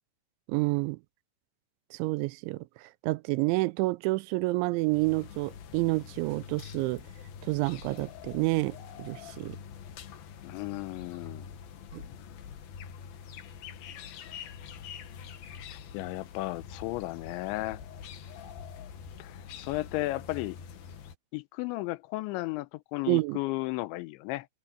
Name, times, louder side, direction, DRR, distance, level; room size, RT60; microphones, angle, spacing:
voice 1, 0.5-1.0 1.9-2.7 3.0-7.0 7.5-9.6 11.9-12.0 23.1-23.4, right 23 dB, 90° right, 3.0 m, -29 dB
sound 1, 4.8-21.1, left 7 dB, 60° left, 3.1 m, -45 dB
voice 2, 10.4-11.5 15.7-17.8 19.2-20.6 21.3-24.5, left 19 dB, 85° left, 3.0 m, -34 dB
omnidirectional pair, 5.2 m